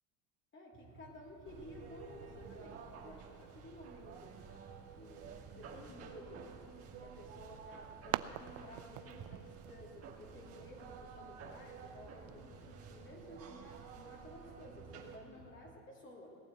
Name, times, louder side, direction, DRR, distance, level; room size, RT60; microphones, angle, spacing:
voice 1, 0.5-4.4 5.0-6.5 7.0-16.4, left 1 dB, 30° left, -2 dB, 2.8 m, -54 dB
sound 1, 0.7-15.7, right 3 dB, 15° right, 3.2 m, -60 dB
sound 2, 1.4-15.2, right 6 dB, 35° right, 2.1 m, -52 dB
sound 3, 7.2-12.3, right 17 dB, 65° right, 0.5 m, -46 dB
17.5 x 9.2 x 7.5 m, 2.5 s
supercardioid pair, 115°, 41 cm